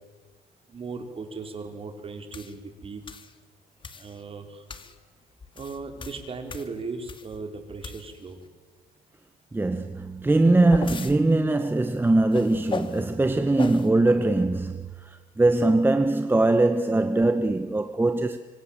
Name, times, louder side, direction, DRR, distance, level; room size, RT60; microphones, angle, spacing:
voice 1, 0.7-3.0 3.9-4.6 5.5-8.4, right 4 dB, 35° right, 4.6 m, -37 dB
sound 1, 2.3-2.5 3.1-3.3 3.8-4.1 4.7-5.0 5.4-7.4 7.8-8.3 10.2-11.2 12.3-13.0 13.6-13.9, left 5 dB, 30° left, 2.1 m, -37 dB
voice 2, 9.5-18.4, right 2 dB, 10° right, 1.2 m, -22 dB
26.0 x 25.5 x 7.5 m
cardioid pair, 110°, 17 cm